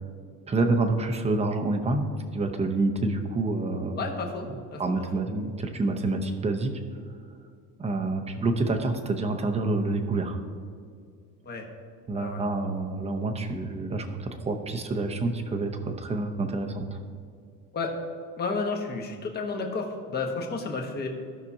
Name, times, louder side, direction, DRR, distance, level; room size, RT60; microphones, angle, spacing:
voice 1, 0.5-2.1 2.3-4.0 4.8-6.8 7.8-10.4 12.1-17.0, right 2 dB, 20° right, 4 dB, 0.8 m, -27 dB
voice 2, 4.0-5.1 11.4-11.7 12.1-12.4 17.7-17.9 18.4-21.1, left 4 dB, 30° left, 2 dB, 1.3 m, -32 dB
16.0 x 5.9 x 2.8 m, 2.2 s
cardioid pair, 145°, 33 cm